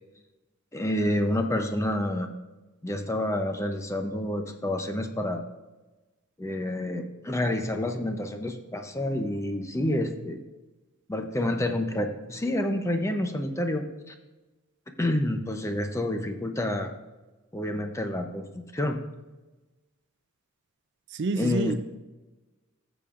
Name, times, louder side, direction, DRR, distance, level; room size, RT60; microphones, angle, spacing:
voice 1, 0.7-2.3 2.8-5.4 6.4-10.4 11.1-14.1 15.0-16.9 17.5-19.0 21.4-21.7, left 1 dB, 15° left, 0.6 m, -28 dB
voice 2, 21.1-21.7, right 3 dB, 55° right, 0.5 m, -28 dB
14.0 x 7.0 x 2.5 m
head